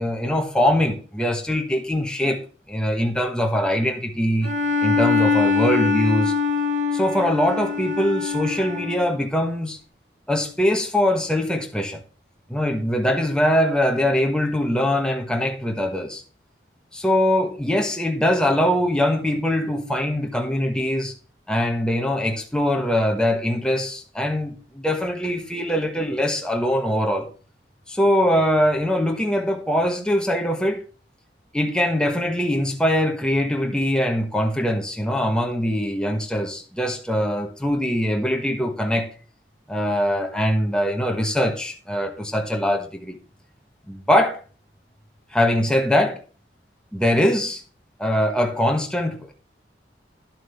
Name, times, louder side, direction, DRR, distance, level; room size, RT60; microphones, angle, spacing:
voice 1, 0.0-2.4 2.7-4.5 4.8-6.3 6.9-9.8 10.3-12.0 12.5-16.2 16.9-21.1 21.5-27.3 27.9-30.8 31.5-39.1 39.7-43.2 43.9-44.4 45.3-46.2 46.9-47.6 48.0-49.3, equal, 5° left, 1.1 m, -22 dB
Bowed string instrument, 4.4-9.1, left 5 dB, 85° right, 3.2 m, -23 dB
11.0 x 7.4 x 3.5 m
head